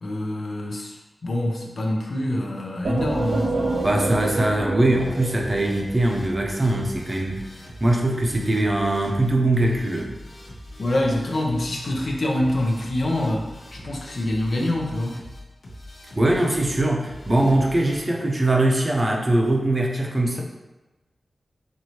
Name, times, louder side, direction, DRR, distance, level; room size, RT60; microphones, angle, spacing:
voice 1, 0.0-3.9 10.8-15.2, left 1 dB, 65° left, -1 dB, 0.6 m, -26 dB
sound 1, 2.8-6.4, right 3 dB, 70° right, 0.4 m, -28 dB
sound 2, 3.0-18.0, left 1 dB, 85° left, 1.0 m, -42 dB
voice 2, 3.8-7.5 7.8-10.2 16.2-20.4, right 1 dB, 30° right, 0 dB, 0.6 m, -21 dB
4.5 x 2.6 x 3.0 m, 1.1 s
wide cardioid pair, 85°, 0 cm